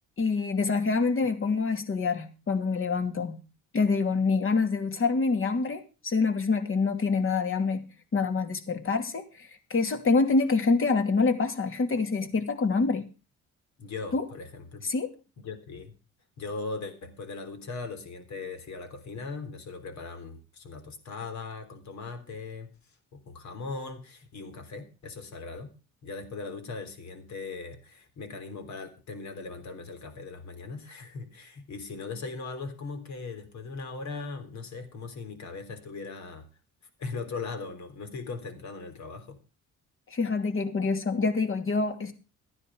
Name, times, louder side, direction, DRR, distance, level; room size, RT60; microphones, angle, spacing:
voice 1, 0.2-3.4 3.7-7.9 8.1-13.1 14.1-14.2 14.8-15.1 40.1-42.1, left 4 dB, 45° left, 8 dB, 2.7 m, -26 dB
voice 2, 13.8-14.9 15.4-15.9 16.4-22.7 23.1-25.7 26.0-36.5 37.0-39.4, left 4 dB, 65° left, 8 dB, 3.6 m, -39 dB
14.0 x 10.0 x 5.0 m, 0.32 s
cardioid pair, 90°, 30 cm